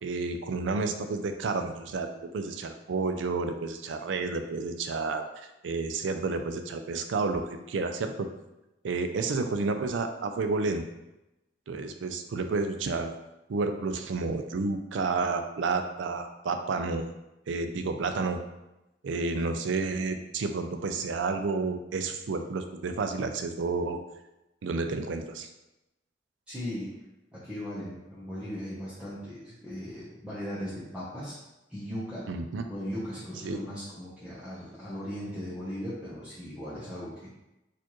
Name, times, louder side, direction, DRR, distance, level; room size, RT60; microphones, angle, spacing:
voice 1, 0.0-2.1 2.3-8.3 8.8-10.8 11.7-13.1 13.5-17.1 17.5-18.4 19.0-24.0 24.6-25.5 32.3-32.6 33.4-33.6, right 3 dB, 80° right, 7 dB, 0.4 m, -30 dB
voice 2, 26.5-26.9 27.3-31.3 31.7-32.3 32.7-37.4, equal, 5° right, -11 dB, 0.8 m, -38 dB
4.3 x 2.5 x 2.9 m, 0.95 s
head